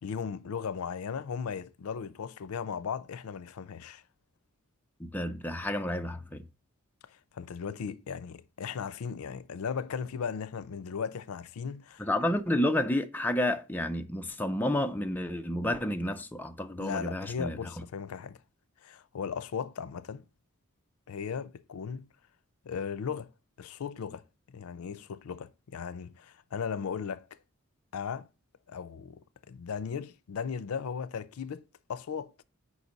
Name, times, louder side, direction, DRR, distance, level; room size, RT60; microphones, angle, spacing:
voice 1, 0.0-4.0 7.1-12.0 16.8-18.4 18.8-20.2 21.1-22.1 22.6-23.3 23.6-27.4 27.9-28.3 28.7-31.6 31.9-32.3, left 6 dB, 85° left, 0.4 m, -37 dB
voice 2, 5.0-6.5 12.0-17.6, left 1 dB, 10° left, 0.4 m, -30 dB
5.0 x 4.0 x 5.1 m
head